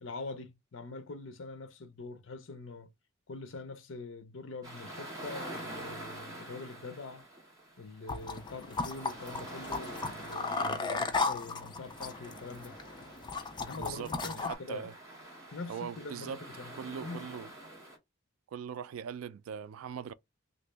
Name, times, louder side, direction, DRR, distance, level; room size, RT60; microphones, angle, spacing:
voice 1, 0.0-2.9 3.3-7.2 7.8-12.7 13.6-14.9 15.5-16.7 17.0-17.3, left 3 dB, 65° left, 0.6 m, -44 dB
sound 1, 4.6-18.0, right 1 dB, 15° right, 1.6 m, -47 dB
sound 2, 8.1-14.5, left 4 dB, 20° left, 0.4 m, -36 dB
voice 2, 13.8-14.9 15.7-16.4 16.7-17.5 18.5-20.1, right 7 dB, 75° right, 0.3 m, -41 dB
3.0 x 2.6 x 3.3 m
head